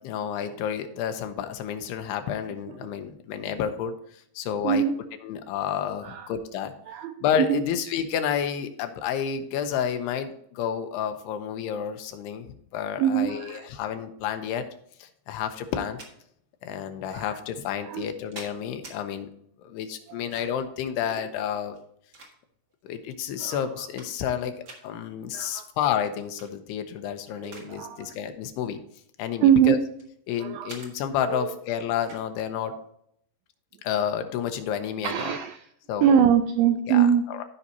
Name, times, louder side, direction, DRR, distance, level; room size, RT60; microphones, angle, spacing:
voice 1, 0.0-4.8 5.2-6.7 7.2-14.6 15.0-16.0 16.6-19.3 19.6-21.8 22.8-28.8 29.2-29.8 30.3-32.7 33.8-35.3 35.9-36.3 36.9-37.4, left 8 dB, 90° left, 7 dB, 2.9 m, -30 dB
voice 2, 4.6-5.0 6.0-6.3 6.9-7.6 13.0-13.7 17.1-17.4 17.9-18.1 20.1-20.3 23.4-23.6 25.3-25.7 27.4-28.1 29.4-29.8 30.4-30.7 31.2-31.5 32.7-32.8 35.0-35.6 36.0-37.3, right 9 dB, 85° right, 7 dB, 2.1 m, -23 dB
sound 1, 15.7-16.1 17.1-17.2 17.9-19.0 20.0-20.7 21.7-22.7 23.3-23.4 23.7-24.4 24.6-24.8 26.2-26.5 26.9-27.7 28.0-28.3 29.0-30.1 30.7-30.9 32.0-32.3, right 2 dB, 70° right, 1.0 m, -46 dB
14.5 x 5.5 x 2.8 m, 0.70 s
omnidirectional pair, 4.6 m